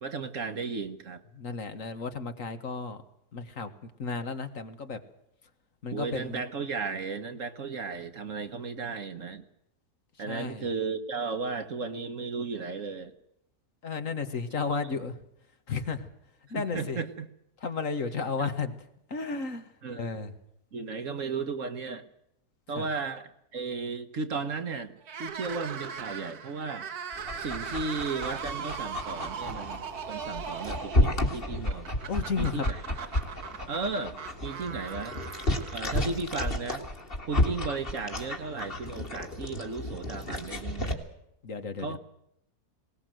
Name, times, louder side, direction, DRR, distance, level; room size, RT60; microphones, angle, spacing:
voice 1, 0.0-1.2 5.9-9.4 10.2-13.1 16.5-17.3 18.4-18.5 19.8-20.1 20.7-22.1 22.7-26.9 27.3-31.9 32.4-33.1 33.7-35.2 35.7-36.9 37.2-41.0 41.8-42.0, right 4 dB, 55° right, 10 dB, 1.5 m, -35 dB
voice 2, 1.4-3.0 3.3-3.7 4.0-5.0 5.8-6.4 10.3-10.7 13.8-15.1 15.7-16.1 16.5-17.0 17.6-18.8 19.1-19.6 19.9-20.3 22.8-22.9 32.1-32.7 41.4-41.9, left 4 dB, 55° left, 9 dB, 1.8 m, -33 dB
sound 1, 25.0-36.3, right 7 dB, 70° right, 1.8 m, -39 dB
Dog, 27.1-40.9, left 1 dB, 35° left, 2.6 m, -32 dB
20.5 x 19.0 x 7.8 m, 0.80 s
omnidirectional pair, 1.7 m